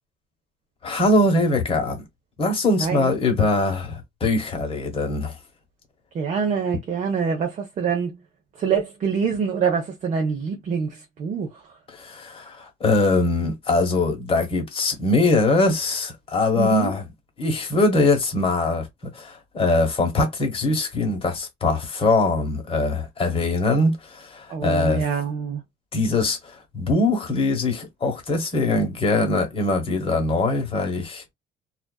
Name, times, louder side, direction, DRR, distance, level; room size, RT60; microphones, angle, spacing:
voice 1, 0.8-2.0 2.4-5.4 11.9-17.1 17.4-25.0 25.9-31.2, left 2 dB, 35° left, 1.0 m, -22 dB
voice 2, 2.8-3.2 6.1-8.2 8.6-11.5 16.6-17.0 24.5-25.6, right 6 dB, 45° right, 0.7 m, -25 dB
2.4 x 2.3 x 2.2 m
cardioid pair, 110°, 17 cm